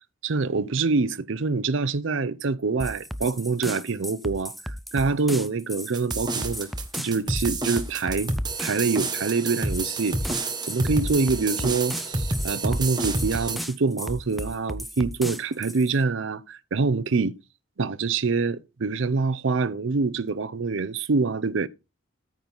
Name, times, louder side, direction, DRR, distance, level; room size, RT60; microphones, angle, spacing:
voice 1, 0.2-6.7 7.0-8.3 8.6-10.2 10.7-17.3 17.8-21.7, right 4 dB, 60° right, 0.6 m, -25 dB
sound 1, 2.8-16.0, equal, ahead, 0.4 m, -36 dB
sound 2, 5.9-13.6, right 2 dB, 20° right, 1.2 m, -29 dB
9.2 x 3.9 x 7.1 m
head